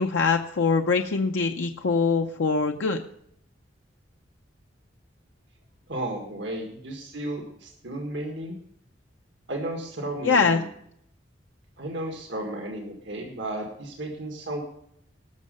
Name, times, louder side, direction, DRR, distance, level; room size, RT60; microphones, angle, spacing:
voice 1, 0.0-3.0 10.2-10.6, left 4 dB, 90° left, 4 dB, 0.6 m, -23 dB
voice 2, 5.9-8.6 9.5-10.6 11.8-14.6, right 1 dB, 75° right, 2 dB, 1.8 m, -33 dB
18.0 x 6.4 x 5.3 m, 0.70 s
head